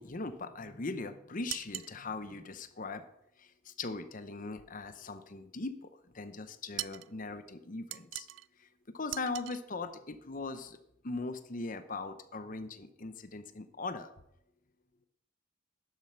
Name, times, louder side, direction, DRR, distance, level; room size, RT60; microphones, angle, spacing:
voice 1, 0.0-3.0 3.4-5.9 6.1-8.3 8.6-8.7 8.9-10.8 11.0-14.1, left 3 dB, 40° left, 10 dB, 0.8 m, -40 dB
sound 1, 1.5-2.0 6.8-7.1 7.9-8.5 9.1-9.6, right 16 dB, 65° right, 0.3 m, -40 dB
12.0 x 7.5 x 5.8 m, 0.81 s
head